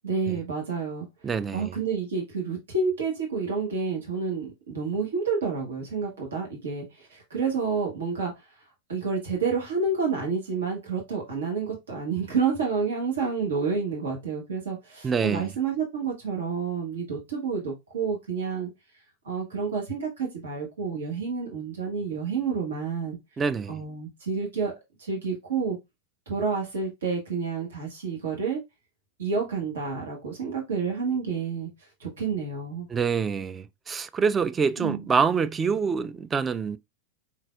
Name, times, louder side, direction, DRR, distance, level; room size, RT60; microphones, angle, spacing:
voice 1, 0.0-1.1 1.5-8.3 8.9-18.7 19.2-23.2 23.7-24.7 25.0-25.8 26.3-28.6 29.2-31.7 32.0-32.9 34.8-35.1, right 5 dB, 65° right, 1.5 m, -29 dB
voice 2, 1.2-1.8 15.0-15.5 23.4-23.8 32.9-36.8, right 5 dB, 20° right, 0.4 m, -26 dB
4.6 x 4.0 x 2.3 m
figure-of-eight pair, 90°, 0 cm